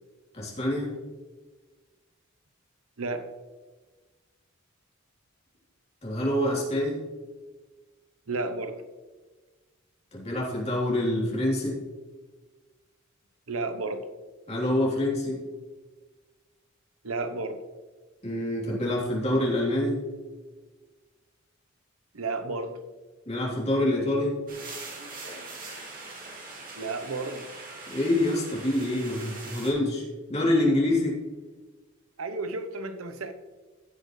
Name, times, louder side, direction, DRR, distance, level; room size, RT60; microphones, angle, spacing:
voice 1, 0.3-0.9 6.0-7.0 10.1-11.8 14.5-15.4 18.2-20.0 23.2-24.4 27.9-30.0 30.3-31.2, left 1 dB, 30° left, -4 dB, 3.3 m, -26 dB
voice 2, 8.3-8.8 13.5-14.0 17.0-17.6 22.1-22.8 26.8-27.4 32.2-33.3, right 3 dB, 90° right, 9 dB, 1.0 m, -32 dB
sound 1, 24.5-29.7, right 3 dB, 40° right, 2.6 m, -42 dB
16.5 x 6.6 x 3.2 m, 1.3 s
head